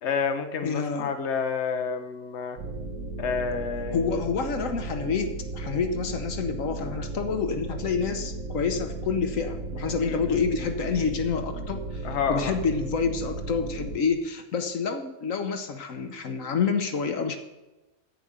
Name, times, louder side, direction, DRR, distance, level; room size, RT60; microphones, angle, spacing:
voice 1, 0.0-2.6 3.2-4.2 10.0-10.4 12.0-12.5, left 6 dB, 55° left, 6 dB, 1.1 m, -29 dB
voice 2, 0.6-1.1 3.9-17.4, left 5 dB, 70° left, 7 dB, 1.3 m, -28 dB
sound 1, 2.6-14.0, right 2 dB, 70° right, 1.5 m, -35 dB
14.5 x 5.0 x 6.7 m, 1.1 s
omnidirectional pair, 1.5 m